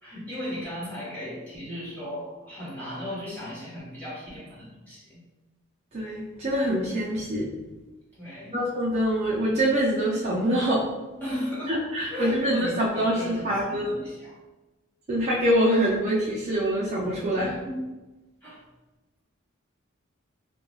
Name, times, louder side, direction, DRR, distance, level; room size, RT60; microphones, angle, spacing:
voice 1, 0.0-5.2 8.1-8.6 11.2-11.8 12.1-14.4 17.4-17.9 18.4-18.6, equal, 10° left, -10 dB, 1.1 m, -36 dB
voice 2, 5.9-7.5 8.5-10.8 11.7-14.0 15.1-17.5, equal, 30° right, -6 dB, 0.4 m, -25 dB
2.2 x 2.2 x 3.1 m, 1.1 s
head